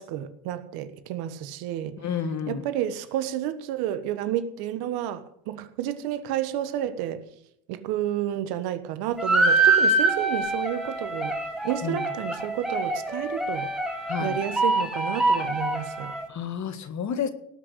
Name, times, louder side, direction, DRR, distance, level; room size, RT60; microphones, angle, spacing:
voice 1, 0.0-2.0 2.5-7.2 7.7-11.4 11.6-13.7 14.2-16.1, right 11 dB, 80° right, 1.4 m, -30 dB
voice 2, 2.0-2.6 11.8-12.1 14.1-14.4 16.3-17.3, left 7 dB, 50° left, 1.9 m, -30 dB
sound 1, 9.2-16.2, right 2 dB, ahead, 2.9 m, -25 dB
18.5 x 6.2 x 8.2 m
supercardioid pair, 80°, 37 cm